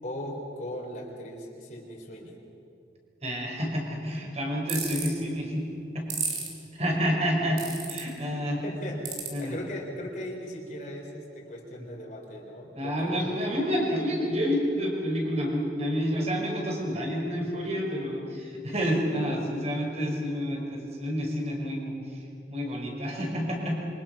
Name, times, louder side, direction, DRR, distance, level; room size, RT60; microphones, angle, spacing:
voice 1, 0.0-2.4 8.6-13.7, equal, 45° left, -1 dB, 4.1 m, -38 dB
voice 2, 3.2-5.7 5.9-6.1 6.7-7.6 7.9-8.6 9.3-9.6 11.8-11.9 12.7-22.2 22.5-23.8, equal, 35° right, 0 dB, 5.5 m, -29 dB
sound 1, 4.7-5.1 6.1-6.5 7.6-8.0 9.0-9.3, right 6 dB, 70° right, 4.4 m, -31 dB
27.5 x 24.5 x 6.0 m, 2.8 s
head